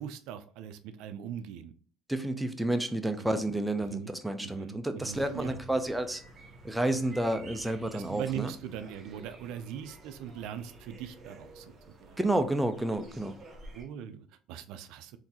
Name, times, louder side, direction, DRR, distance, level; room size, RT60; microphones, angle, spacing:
voice 1, 0.0-1.7 3.3-3.4 3.9-4.1 4.4-5.6 7.9-11.7 12.0-12.2 13.7-15.2, right 9 dB, 75° right, 11 dB, 0.3 m, -40 dB
voice 2, 2.1-6.2 6.6-8.5 12.2-13.4, right 1 dB, 5° right, 7 dB, 0.4 m, -30 dB
sound 1, 5.0-13.8, right 1 dB, 35° right, 1.0 m, -51 dB
3.7 x 2.6 x 2.8 m, 0.44 s
supercardioid pair, 100°, 0 cm